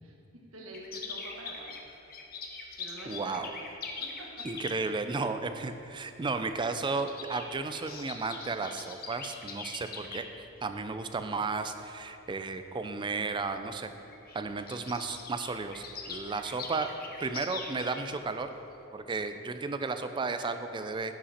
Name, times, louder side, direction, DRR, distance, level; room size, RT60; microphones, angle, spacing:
voice 1, 0.0-1.8 2.5-3.5 4.0-4.5 4.8-5.2, right 1 dB, 80° right, -1 dB, 1.4 m, -48 dB
sound 1, 0.7-5.0 6.0-6.2 6.5-10.2 10.9-11.2 11.8-11.9 12.2-12.4 13.3-13.4 13.7-13.8 14.0-18.4 18.7-18.8, left 4 dB, 45° left, 0.9 m, -42 dB
voice 2, 3.1-3.5 4.4-10.3 10.6-13.9 14.3-16.9 17.2-18.5 18.9-21.2, right 4 dB, 25° right, 9 dB, 0.4 m, -33 dB
11.0 x 5.6 x 4.2 m, 2.8 s
head